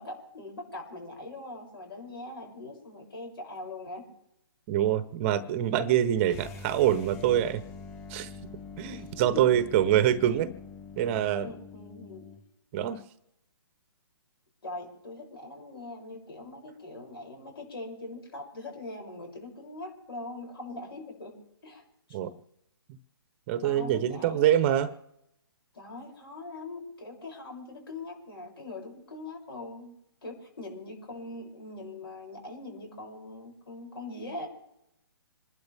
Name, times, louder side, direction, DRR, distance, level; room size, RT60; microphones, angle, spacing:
voice 1, 0.0-4.1 8.9-9.6 11.4-12.3 14.6-21.4 21.6-21.8 22.1-22.2 23.6-24.5 25.7-34.5, left 2 dB, 70° left, 1 dB, 7.3 m, -42 dB
voice 2, 4.7-7.6 8.1-8.3 8.8-10.5 11.0-11.5 12.7-13.0 22.1-22.3 23.5-24.9, right 11 dB, 30° right, 13 dB, 1.0 m, -25 dB
sound 1, 6.3-12.4, left 4 dB, 15° left, 3.4 m, -45 dB
27.5 x 12.0 x 3.6 m, 0.82 s
hypercardioid pair, 145°, 13 cm